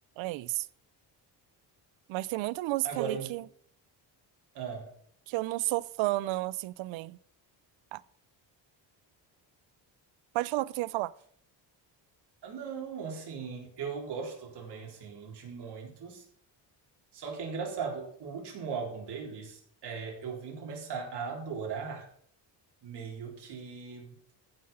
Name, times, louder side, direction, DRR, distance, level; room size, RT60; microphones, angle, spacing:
voice 1, 0.2-0.7 2.1-3.4 5.3-7.2 7.9-8.0 10.3-11.1, right 19 dB, 90° right, 0.6 m, -32 dB
voice 2, 2.8-3.3 4.5-4.9 12.4-16.2 17.1-22.1 22.8-24.2, right 5 dB, 60° right, 4.1 m, -38 dB
15.0 x 5.8 x 5.5 m
cardioid pair, 105°, 45 cm